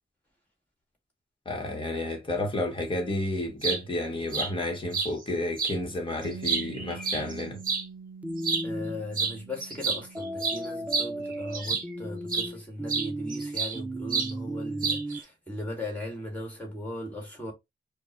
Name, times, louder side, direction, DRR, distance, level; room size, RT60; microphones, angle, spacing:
voice 1, 1.4-7.6, left 1 dB, 25° left, 1.2 m, -31 dB
sound 1, 3.4-3.8 4.3-4.5 4.9-5.1 5.6-5.8 6.2-7.8 8.4-8.7 9.1-9.4 9.6-11.9 12.3-12.5 12.9-13.8 14.1-14.3 14.8-15.2, right 5 dB, 50° right, 0.9 m, -29 dB
Bass guitar, 6.2-12.5, right 5 dB, 65° right, 0.6 m, -46 dB
sound 2, 8.2-9.0 10.1-15.2, right 1 dB, 10° right, 0.3 m, -35 dB
voice 2, 8.6-17.5, left 1 dB, 10° left, 1.9 m, -38 dB
5.1 x 2.2 x 3.1 m
wide cardioid pair, 160°, 19 cm